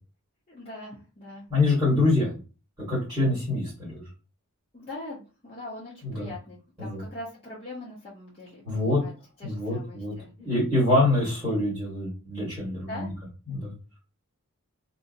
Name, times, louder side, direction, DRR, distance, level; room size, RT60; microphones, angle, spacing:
voice 1, 0.5-1.5 4.7-9.1 9.4-10.3 12.9-13.2, left 2 dB, 25° left, -8 dB, 0.8 m, -41 dB
voice 2, 1.5-2.4 2.9-4.0 6.0-6.3 6.8-7.0 8.6-9.0 9.4-10.1 10.4-13.1 13.5-13.7, left 2 dB, 15° right, -7 dB, 1.6 m, -25 dB
2.7 x 2.6 x 2.5 m, 0.33 s
head